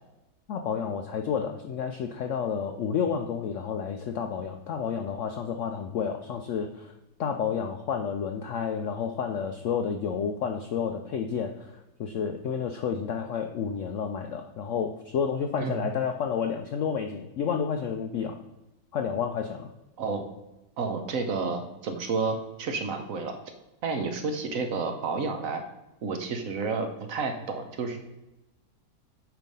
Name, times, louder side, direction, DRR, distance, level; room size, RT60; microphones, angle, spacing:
voice 1, 0.5-6.9 7.2-18.4 18.9-19.7, left 7 dB, 75° left, 5 dB, 0.7 m, -30 dB
voice 2, 20.8-23.4 23.8-25.6 26.0-28.0, right 4 dB, 60° right, 5 dB, 1.1 m, -30 dB
9.2 x 3.4 x 5.3 m, 0.97 s
omnidirectional pair, 1.8 m